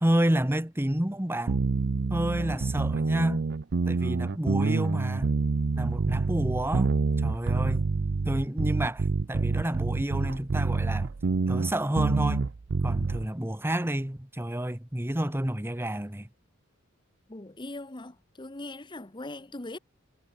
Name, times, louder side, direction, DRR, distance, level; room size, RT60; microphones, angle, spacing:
voice 1, 0.0-1.7 2.1-3.5 3.8-5.4 5.7-6.9 7.2-7.8 8.2-11.1 11.5-12.5 12.8-16.3, right 1 dB, 10° right, 1.3 m, -29 dB
sound 1, 1.5-13.3, right 4 dB, 55° right, 0.5 m, -27 dB
voice 2, 2.4-2.8 17.3-19.8, left 2 dB, 20° left, 1.1 m, -41 dB
head